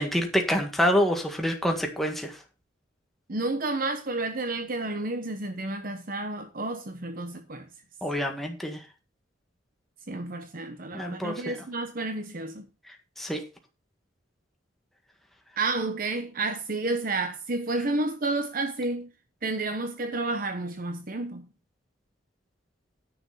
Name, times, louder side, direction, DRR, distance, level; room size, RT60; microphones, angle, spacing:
voice 1, 0.0-2.3 8.0-8.8 10.9-11.5 13.2-13.4, equal, ahead, 1.7 m, -26 dB
voice 2, 3.3-7.7 10.1-12.7 15.6-19.1 19.4-21.5, right 2 dB, 50° right, 1.0 m, -30 dB
10.5 x 6.1 x 5.7 m
head